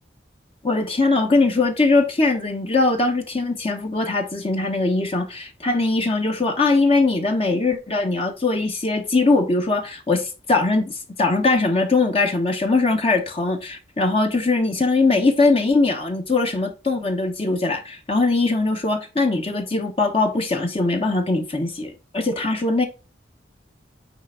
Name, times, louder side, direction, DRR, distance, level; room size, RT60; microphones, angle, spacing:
voice 1, 0.6-22.9, left 3 dB, 30° left, 0.9 m, -21 dB
9.2 x 3.3 x 3.8 m
head